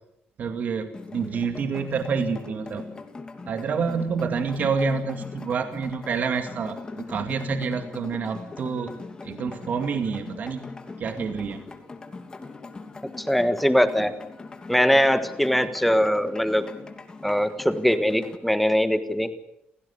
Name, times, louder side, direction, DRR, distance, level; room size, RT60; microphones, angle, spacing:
voice 1, 0.4-2.8 3.5-8.9 9.2-10.6 11.0-11.6, right 5 dB, 45° right, 7 dB, 2.3 m, -28 dB
sound 1, 0.9-18.4, left 3 dB, 20° left, 2.9 m, -41 dB
voice 2, 13.2-14.1 14.7-16.6 17.2-19.3, equal, ahead, 10 dB, 1.4 m, -21 dB
29.5 x 16.0 x 8.3 m, 0.83 s
cardioid pair, 140°, 4 cm